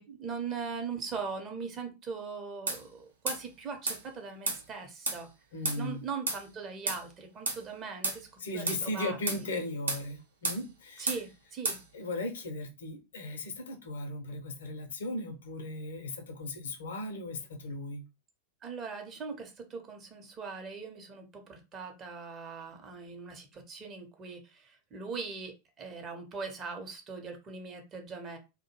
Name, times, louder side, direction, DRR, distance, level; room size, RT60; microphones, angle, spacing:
voice 1, 0.0-5.3 5.8-8.3 8.5-9.5 11.0-11.8 18.6-28.4, right 5 dB, 30° right, 0.7 m, -40 dB
sound 1, 2.7-2.8 3.3-3.4 3.9-4.0 4.5-4.6 5.1-5.2 5.7-5.8 6.3-6.4 6.9-7.0 7.5-7.6 8.0-8.2 8.7-8.8 9.3-9.4 9.9-10.0 10.4-10.6 11.1-11.2 11.7-11.8, right 3 dB, 70° right, 0.6 m, -31 dB
voice 2, 5.5-6.0 8.4-11.2 11.9-18.0, left 2 dB, 65° left, 0.5 m, -37 dB
2.2 x 2.1 x 3.0 m
figure-of-eight pair, 90°, 0 cm